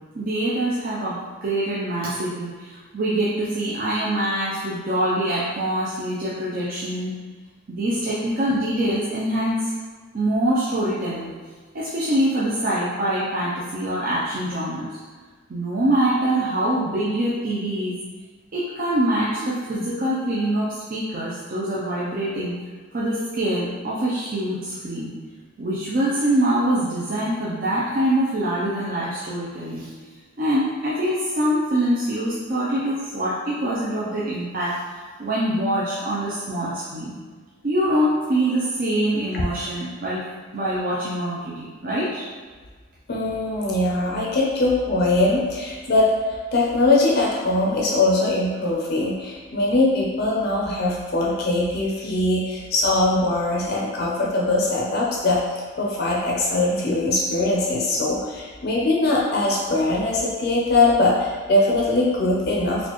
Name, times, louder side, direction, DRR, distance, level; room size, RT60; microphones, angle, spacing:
voice 1, 0.1-7.1 7.7-9.6 10.1-11.3 11.7-14.9 15.5-18.0 18.5-22.5 22.9-25.1 25.6-29.9 30.4-34.8 35.2-37.2 37.6-40.3 40.5-42.3, right 1 dB, 45° right, -8 dB, 0.5 m, -24 dB
voice 2, 43.1-55.4 55.8-62.9, left 2 dB, 50° left, -3 dB, 0.5 m, -21 dB
4.1 x 2.4 x 3.0 m, 1.5 s
head